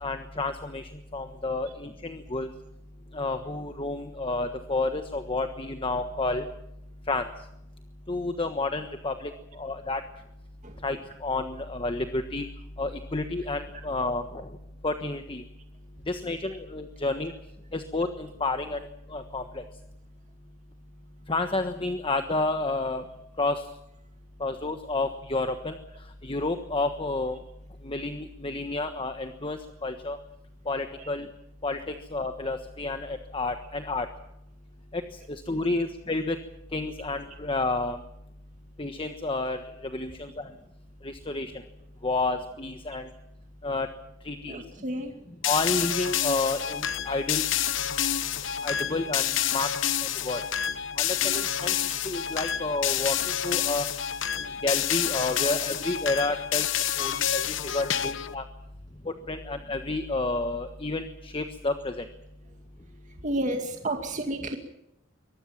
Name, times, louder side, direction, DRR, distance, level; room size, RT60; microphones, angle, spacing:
voice 1, 0.0-0.8 1.1-2.5 3.1-6.4 7.1-7.2 8.1-9.3 9.6-10.0 10.8-11.0 11.2-12.4 12.8-14.2 14.8-15.4 16.1-17.3 17.7-18.8 19.1-19.6 21.3-23.0 23.4-23.6 24.4-25.7 26.2-27.4 27.8-30.2 30.7-31.3 31.6-34.1 34.9-35.0 35.5-36.4 36.7-38.0 38.8-39.6 39.9-40.4 41.0-41.5 42.0-43.0 43.6-43.9 44.2-44.6 45.4-47.4 48.6-49.7 50.2-50.4 51.0-51.7 52.0-53.8 54.6-56.7 57.0-57.4 57.7-58.4 59.3-61.9, left 2 dB, 25° left, 7 dB, 1.3 m, -30 dB
voice 2, 44.5-45.1 55.4-55.5 57.2-57.5 63.2-64.6, right 1 dB, 40° right, 4 dB, 2.3 m, -32 dB
sound 1, 45.4-58.3, left 10 dB, 65° left, 1.1 m, -28 dB
24.0 x 20.0 x 7.3 m, 0.84 s
head